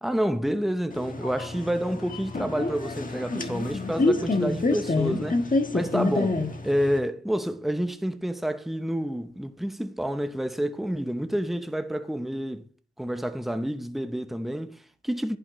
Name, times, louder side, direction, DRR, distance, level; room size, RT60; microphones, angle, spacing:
voice 1, 0.0-5.4 5.7-12.7 13.0-15.4, equal, ahead, 0.8 m, -29 dB
sound 1, 0.9-7.0, left 2 dB, 40° left, 1.4 m, -27 dB
10.5 x 8.8 x 3.1 m
cardioid pair, 55°, 21 cm